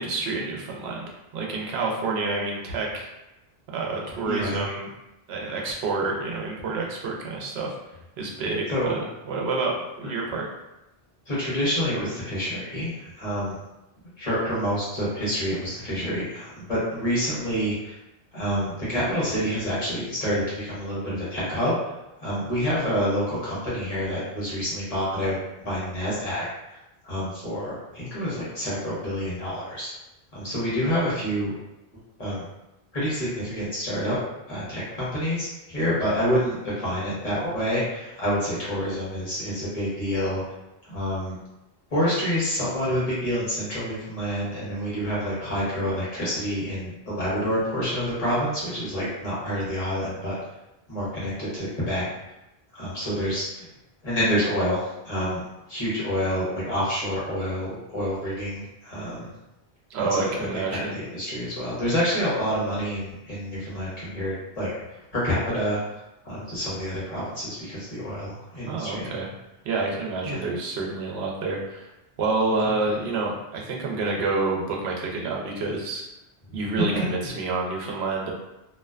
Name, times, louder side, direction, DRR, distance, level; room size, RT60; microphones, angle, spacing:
voice 1, 0.0-3.1 3.7-4.9 5.3-7.7 8.2-10.5 59.9-61.0 68.7-69.3 69.6-71.9 72.2-76.0 76.5-78.3, right 3 dB, 85° right, -1 dB, 0.8 m, -28 dB
voice 2, 4.2-4.7 8.7-9.0 11.3-13.6 14.2-18.0 18.3-21.8 22.2-25.4 25.6-26.4 27.0-29.9 30.3-31.5 32.2-32.4 32.9-34.2 34.5-40.4 40.8-41.4 41.9-50.3 50.9-52.0 52.7-53.7 54.0-54.8 55.0-55.4 55.7-59.3 60.0-60.5 60.7-64.7 65.1-65.8 66.2-69.1 70.2-70.4 76.5-76.6 76.9-77.0, equal, 40° left, -9 dB, 1.0 m, -27 dB
2.5 x 2.1 x 2.3 m, 0.93 s
omnidirectional pair, 1.0 m